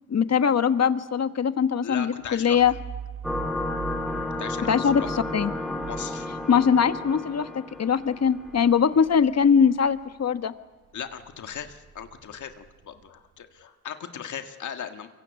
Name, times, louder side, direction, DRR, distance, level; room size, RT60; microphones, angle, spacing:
voice 1, 0.1-2.7 4.7-5.5 6.5-10.5, left 7 dB, 60° left, 11 dB, 1.4 m, -22 dB
voice 2, 1.8-2.6 4.4-5.1 5.9-6.3 10.9-15.1, left 8 dB, 85° left, 7 dB, 1.7 m, -38 dB
sound 1, 2.2-10.5 10.8-13.4, right 7 dB, 80° right, 1.8 m, -43 dB
sound 2, 3.2-8.5, left 2 dB, ahead, 3.0 m, -32 dB
24.0 x 24.0 x 8.2 m, 1.2 s
cardioid pair, 65°, 29 cm